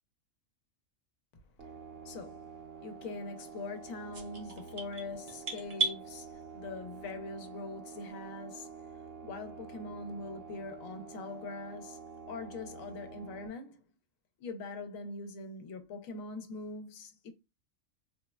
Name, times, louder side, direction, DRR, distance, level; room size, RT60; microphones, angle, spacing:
sound 1, 1.6-13.5, right 6 dB, 70° right, 1.0 m, -48 dB
voice 1, 2.0-2.5 2.8-13.8 14.4-17.3, left 3 dB, 80° left, 1.0 m, -43 dB
sound 2, 4.1-6.0, right 3 dB, 45° right, 0.5 m, -34 dB
3.5 x 2.1 x 2.2 m
omnidirectional pair, 1.4 m